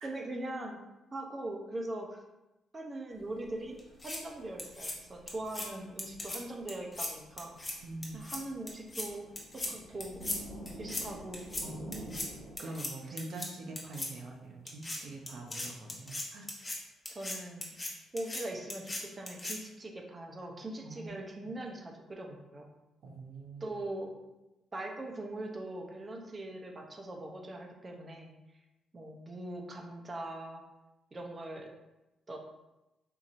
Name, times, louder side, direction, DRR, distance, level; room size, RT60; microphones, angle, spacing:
voice 1, 0.0-0.8 1.1-2.2 2.7-3.8 4.0-7.6 8.1-9.2 9.5-10.3 10.8-11.5 12.6-12.8 17.1-17.8 18.1-22.7 23.6-24.1 24.7-28.3 28.9-30.6 31.1-31.7 32.3-32.4, right 1 dB, 30° right, 2 dB, 0.7 m, -41 dB
sound 1, 3.1-12.6, right 1 dB, 85° right, 1.1 m, -50 dB
sound 2, 3.8-4.2 4.6-4.9 5.3-5.7 6.0-6.4 6.7-7.1 7.4-7.7 8.0-8.4 8.7-9.1 9.4-9.7 10.0-10.4 10.7-11.0 11.3-11.6 11.9-12.3 12.6-12.9 13.2-13.5 13.8-14.1 14.7-15.0 15.3-16.8 17.1-17.4 17.6-17.9 18.2-18.4 18.7-19.0 19.3-19.6, left 2 dB, 20° left, 0.8 m, -38 dB
voice 2, 7.8-8.2 11.6-16.5 20.8-21.5 23.0-23.8, right 2 dB, 65° right, 1 dB, 0.7 m, -45 dB
4.6 x 2.6 x 2.6 m, 0.99 s
cardioid pair, 90°, 0 cm